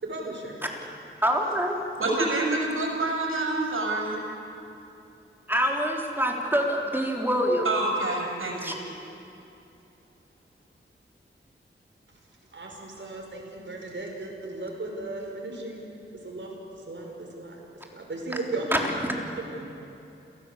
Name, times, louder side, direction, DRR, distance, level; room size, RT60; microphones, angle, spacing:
voice 1, 0.0-0.6 12.1-12.2 12.5-15.9 16.2-18.7 19.4-19.7, right 2 dB, 65° right, 0 dB, 5.7 m, -36 dB
voice 2, 1.2-1.8 5.5-7.7 8.6-8.7 18.7-18.8, equal, 10° right, 0 dB, 3.8 m, -25 dB
voice 3, 2.0-4.2 7.6-8.7, right 2 dB, 85° right, -1 dB, 6.8 m, -27 dB
29.0 x 17.5 x 8.4 m, 2.8 s
wide cardioid pair, 75°, 21 cm